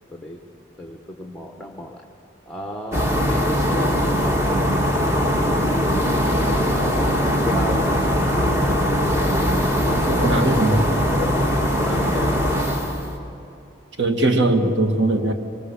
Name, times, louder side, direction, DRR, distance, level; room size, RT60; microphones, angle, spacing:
voice 1, 0.8-2.0 2.5-4.7 6.5-7.1 7.4-7.8 8.1-8.5 11.2-11.4 11.8-12.4, left 1 dB, ahead, 1 dB, 1.4 m, -33 dB
sound 1, 2.9-13.2, equal, 15° right, 2.2 m, -21 dB
sound 2, 4.1-13.3, left 1 dB, 50° right, 3.0 m, -36 dB
voice 2, 10.1-10.9 14.0-15.3, right 2 dB, 80° right, 6 dB, 2.0 m, -20 dB
25.0 x 24.0 x 7.3 m, 2.8 s
head